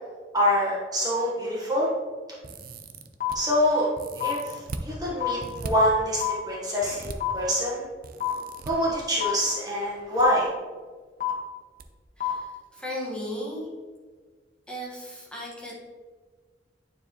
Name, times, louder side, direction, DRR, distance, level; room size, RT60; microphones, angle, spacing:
voice 1, 0.3-1.9 3.3-3.9 4.2-7.9 8.7-10.5, equal, 20° right, -5 dB, 1.3 m, -25 dB
sound 1, 2.4-3.4 4.0-4.9 5.4-5.7 6.8-7.2 8.0-8.7 9.8-10.3 10.5-10.6 11.8-11.9 12.3-12.4, right 3 dB, 55° right, 0.5 m, -39 dB
sound 2, 3.2-3.3 4.2-4.3 5.2-5.3 6.2-6.3 7.2-7.3 8.2-8.3 9.2-9.3 10.2-10.3 11.2-11.3 12.2-12.3, left 16 dB, 50° left, 1.5 m, -26 dB
voice 2, 12.2-13.7 14.7-15.7, equal, 5° left, -5 dB, 1.5 m, -36 dB
9.4 x 4.6 x 3.0 m, 1.5 s
head